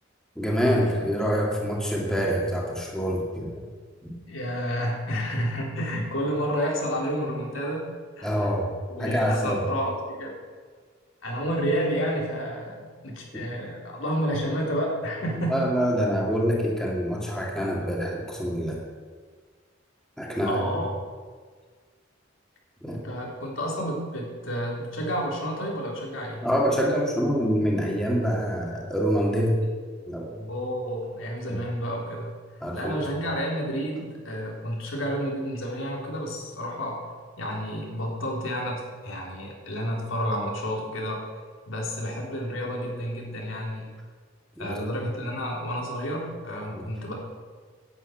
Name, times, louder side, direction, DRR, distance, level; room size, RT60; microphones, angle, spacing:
voice 1, 0.4-3.6 4.0-4.1 8.2-8.7 9.0-9.6 13.3-13.4 15.5-18.8 20.2-20.6 22.8-23.0 26.4-29.6 30.1-30.5 31.5-31.6 32.6-33.0 44.6-44.8 46.7-46.8, equal, 5° left, -3 dB, 2.3 m, -26 dB
voice 2, 4.3-7.9 8.2-8.6 9.0-10.3 11.2-15.7 20.4-20.9 22.9-26.4 30.5-37.0 37.4-41.3 41.7-43.9 44.6-47.1, equal, 85° left, -2 dB, 3.5 m, -30 dB
11.0 x 8.0 x 9.1 m, 1.6 s
head